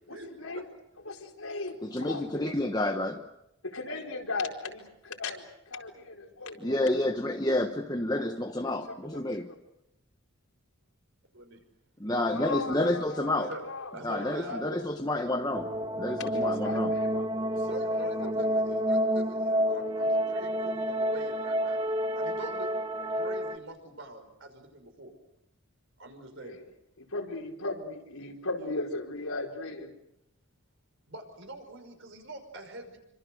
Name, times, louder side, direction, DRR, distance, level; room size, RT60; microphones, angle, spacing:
voice 1, 0.1-0.7 1.0-2.6 3.6-7.1 8.1-8.3 8.6-9.6 12.3-14.8 16.0-17.7 18.0-18.3 26.3-26.7 27.0-29.9, left 3 dB, 80° left, 4.5 m, -38 dB
voice 2, 1.8-3.3 6.6-9.5 12.0-13.5 14.0-16.9, left 1 dB, 15° left, 1.0 m, -29 dB
voice 3, 12.1-12.6 13.4-13.6 13.9-14.9 17.7-21.8 22.1-22.7 23.1-25.1 26.0-26.6 31.1-33.0, right 1 dB, 60° right, 5.8 m, -44 dB
sound 1, 15.5-23.6, equal, 25° right, 1.4 m, -29 dB
28.0 x 25.5 x 6.5 m
head